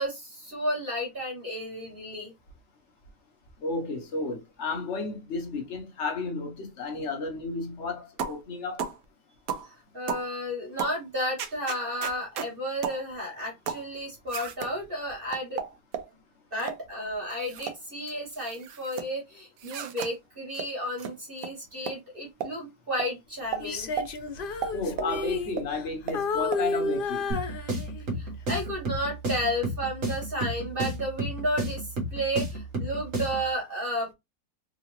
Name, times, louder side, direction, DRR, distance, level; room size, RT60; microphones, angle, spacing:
voice 1, 0.0-2.3 9.9-15.6 16.5-23.9 28.2-31.9 32.1-34.1, equal, 35° right, 1.2 m, -32 dB
voice 2, 3.6-8.8 24.7-27.3, left 3 dB, 50° left, 1.1 m, -32 dB
sound 1, 8.2-8.4 8.8-9.0 9.5-9.7 10.1-10.3 10.8-11.0 11.4-12.5 12.8-13.0 13.7-13.9 14.3-14.7 15.3-16.1 16.6-16.8 17.3-17.8 18.1-19.1 19.6-20.1 20.5-20.7 21.0-21.1 21.4-21.5 21.9-22.0 22.4-22.5 23.0-23.1 23.5-23.6 24.0-24.1 24.6-25.1 25.6-25.7 26.1-26.2 26.5-26.6, right 7 dB, 65° right, 1.0 m, -34 dB
Female singing, 23.6-25.9 26.1-28.2 28.7-29.0, left 3 dB, 70° left, 0.5 m, -31 dB
sound 2, 27.3-33.5, right 1 dB, 50° right, 1.4 m, -32 dB
3.8 x 2.4 x 3.0 m
omnidirectional pair, 1.8 m